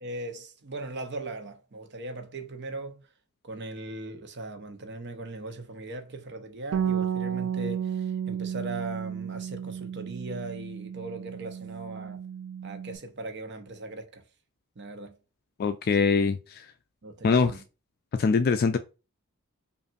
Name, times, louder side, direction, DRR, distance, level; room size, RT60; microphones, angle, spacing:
voice 1, 0.0-3.0 3.4-12.2 12.6-14.2 14.8-15.2 15.9-16.0 17.0-17.6, right 2 dB, 50° right, 0.8 m, -39 dB
Bass guitar, 6.7-13.0, right 8 dB, 90° right, 0.5 m, -33 dB
voice 2, 15.6-16.6 17.2-17.5 18.2-18.8, left 5 dB, 45° left, 0.3 m, -23 dB
5.2 x 2.5 x 2.4 m
head